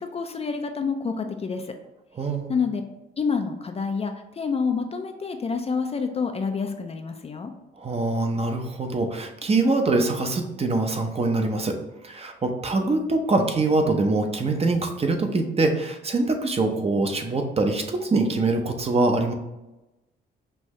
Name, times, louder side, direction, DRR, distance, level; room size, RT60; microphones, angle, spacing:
voice 1, 0.0-1.8 2.5-2.8 3.2-7.5, left 5 dB, 30° left, 6 dB, 0.4 m, -28 dB
voice 2, 2.1-2.5 7.8-11.8 12.0-19.3, right 3 dB, 30° right, 5 dB, 0.6 m, -24 dB
5.5 x 2.7 x 3.1 m, 1.0 s
cardioid pair, 90°, 20 cm